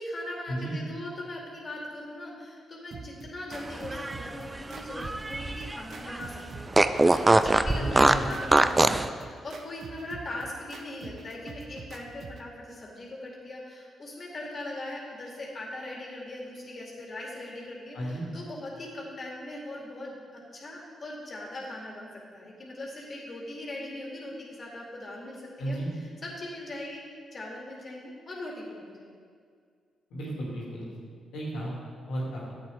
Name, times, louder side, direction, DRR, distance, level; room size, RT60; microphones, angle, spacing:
voice 1, 0.0-27.0 27.3-29.2, left 1 dB, 45° left, -2 dB, 2.3 m, -40 dB
sound 1, 2.9-12.5, right 4 dB, 60° right, 0.7 m, -46 dB
Fart, 3.7-5.8 6.1-6.2 6.7-9.1, right 2 dB, 25° right, 0.4 m, -22 dB
voice 2, 7.8-8.3 17.9-18.2 25.6-25.9 30.1-30.9 31.3-31.7 32.1-32.5, right 1 dB, 75° left, -4 dB, 2.4 m, -33 dB
10.5 x 8.2 x 3.5 m, 2.1 s
hypercardioid pair, 40°, 0 cm